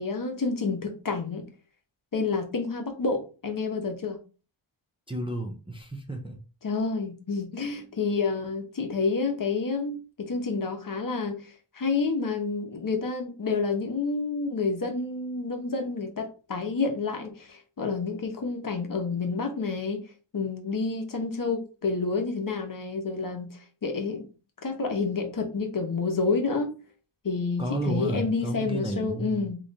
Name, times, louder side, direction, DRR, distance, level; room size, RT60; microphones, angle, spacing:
voice 1, 0.0-1.5 2.1-4.2 6.6-20.0 20.3-24.3 24.6-26.7 27.2-29.6, left 4 dB, 40° left, 0.9 m, -29 dB
voice 2, 5.1-6.4 27.6-29.4, right 1 dB, 10° right, 0.5 m, -32 dB
3.7 x 3.1 x 3.9 m
wide cardioid pair, 130°, 50 cm